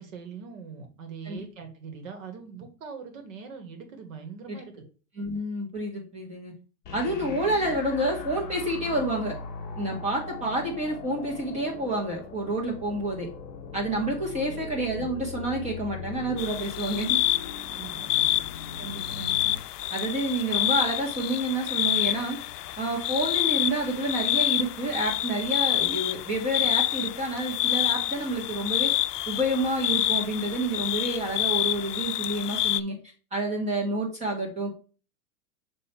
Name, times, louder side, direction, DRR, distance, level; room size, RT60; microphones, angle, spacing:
voice 1, 0.0-4.8 7.1-7.3 14.2-14.7 17.7-18.3, right 5 dB, 55° right, 6 dB, 1.9 m, -42 dB
voice 2, 5.2-6.5 6.9-9.4 9.8-13.3 13.7-17.2 18.8-19.5 19.9-22.4 22.8-28.9 29.3-33.0 33.3-34.7, right 1 dB, 15° right, -1 dB, 1.7 m, -29 dB
sound 1, 6.8-19.6, left 5 dB, 20° left, 1.5 m, -40 dB
sound 2, 16.4-32.8, left 14 dB, 80° left, 0.5 m, -28 dB
7.4 x 3.2 x 4.5 m, 0.37 s
hypercardioid pair, 155°, 47 cm